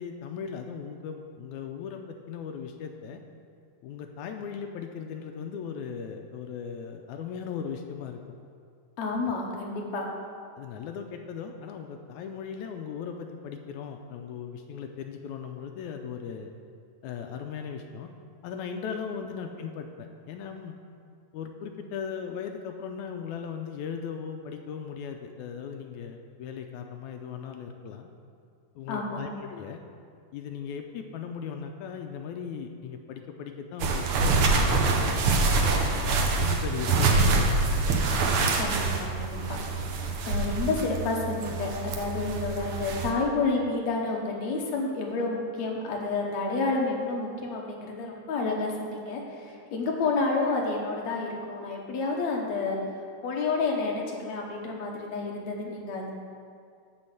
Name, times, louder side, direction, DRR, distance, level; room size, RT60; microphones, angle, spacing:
voice 1, 0.0-3.2 3.8-8.2 10.6-16.5 17.0-18.1 18.4-20.8 21.3-28.1 28.8-29.8 30.3-35.3 35.9-37.4, left 7 dB, 80° left, 4 dB, 1.8 m, -38 dB
voice 2, 9.0-10.1 28.9-29.2 38.6-39.4 40.3-52.8 53.2-56.1, left 3 dB, 65° left, -1 dB, 2.3 m, -30 dB
sound 1, 33.8-43.1, right 3 dB, 80° right, 1.2 m, -25 dB
11.5 x 3.9 x 7.7 m, 2.3 s
omnidirectional pair, 3.7 m